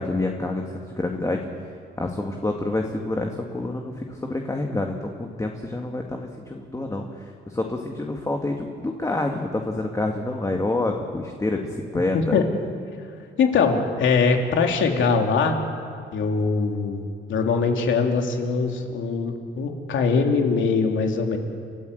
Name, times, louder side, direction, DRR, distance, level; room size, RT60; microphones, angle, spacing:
voice 1, 0.0-1.4 2.0-12.4, left 2 dB, 15° left, 2 dB, 2.1 m, -28 dB
voice 2, 13.4-15.6 16.1-21.4, left 5 dB, 75° left, 3 dB, 3.0 m, -22 dB
29.5 x 14.0 x 8.1 m, 2.3 s
cardioid pair, 90°, 20 cm